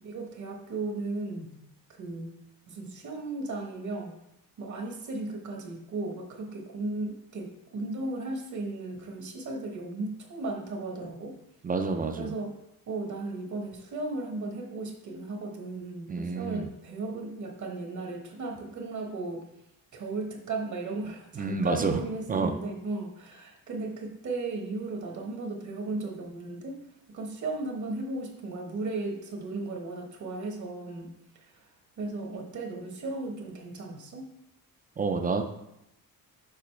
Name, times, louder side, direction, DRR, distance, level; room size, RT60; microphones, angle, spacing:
voice 1, 0.0-1.5 1.9-2.3 2.7-4.2 4.6-11.3 12.2-12.5 12.9-19.4 19.9-26.8 27.1-31.7 32.0-34.2, right 2 dB, 50° right, 2 dB, 1.0 m, -36 dB
voice 2, 11.6-12.4 16.1-16.7 21.4-22.0 22.3-22.5 35.0-35.4, right 4 dB, 25° right, 6 dB, 0.3 m, -28 dB
6.7 x 4.9 x 3.2 m, 0.83 s
wide cardioid pair, 165°, 37 cm